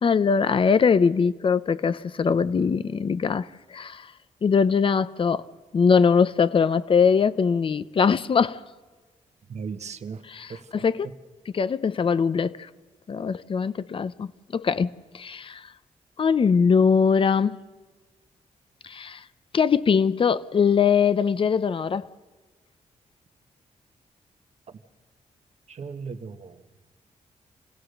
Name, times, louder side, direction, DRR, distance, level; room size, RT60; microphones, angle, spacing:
voice 1, 0.0-4.1 4.4-5.5 5.7-8.6 10.3-11.1 11.5-12.7 13.1-15.6 16.2-17.6 18.8-19.2 19.5-22.1, left 6 dB, 45° left, 0.7 m, -22 dB
voice 2, 9.5-10.2 10.5-10.8 25.7-26.5, right 5 dB, 60° right, 1.4 m, -36 dB
28.5 x 16.5 x 6.6 m
cardioid pair, 90°, 13 cm